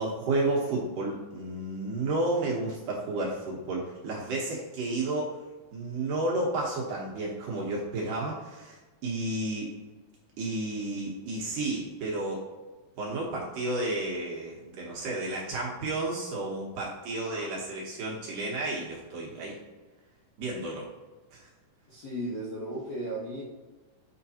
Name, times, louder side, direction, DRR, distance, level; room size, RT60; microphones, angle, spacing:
voice 1, 0.0-5.4 5.7-8.8 9.0-9.7 10.4-12.5 13.0-19.6 20.4-20.9 21.3-21.5, right 2 dB, 65° right, -4 dB, 2.3 m, -32 dB
voice 2, 21.9-23.4, right 1 dB, 65° left, -8 dB, 1.6 m, -35 dB
8.0 x 5.1 x 2.8 m, 1.3 s
omnidirectional pair, 4.8 m